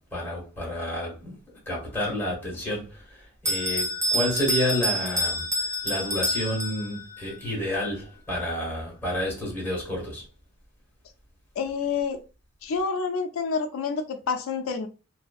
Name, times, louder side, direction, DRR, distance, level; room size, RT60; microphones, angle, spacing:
voice 1, 0.1-1.4 1.7-10.2, left 1 dB, 10° left, 1.4 m, -30 dB
Bell, 3.4-7.2, equal, 15° right, 0.4 m, -27 dB
voice 2, 11.6-12.2 12.6-14.9, left 5 dB, 80° left, 0.4 m, -28 dB
2.6 x 2.6 x 2.3 m
head